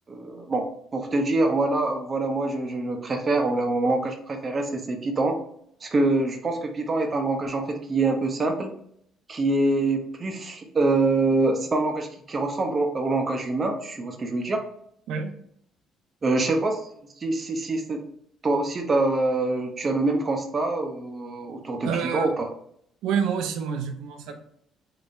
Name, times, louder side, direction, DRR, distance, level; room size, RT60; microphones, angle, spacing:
voice 1, 0.1-0.7 0.9-5.4 5.8-8.7 9.3-14.6 16.2-16.8 17.2-18.0 18.4-22.5, right 2 dB, 35° right, 4 dB, 0.8 m, -25 dB
voice 2, 21.8-22.4 23.0-24.4, right 7 dB, 80° right, 6 dB, 0.6 m, -27 dB
3.5 x 3.3 x 2.6 m, 0.69 s
cardioid pair, 90°, 0 cm